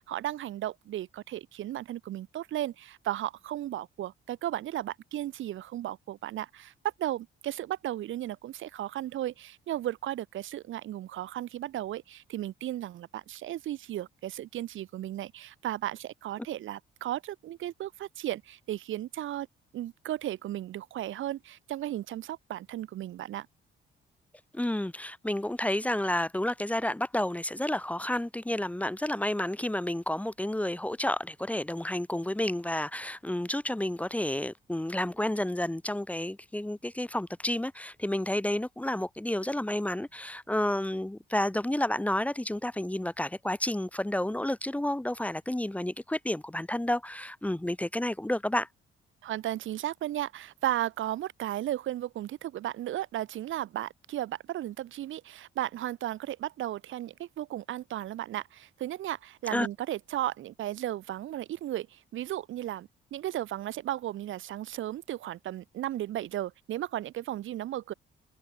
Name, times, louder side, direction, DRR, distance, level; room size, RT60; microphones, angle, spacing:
voice 1, 0.0-6.7 7.0-19.5 19.7-23.5 49.2-67.9, right 13 dB, 80° right, 3.1 m, -35 dB
voice 2, 24.5-48.7 59.5-59.7, left 1 dB, 5° left, 1.6 m, -30 dB
open air
cardioid pair, 90°, 20 cm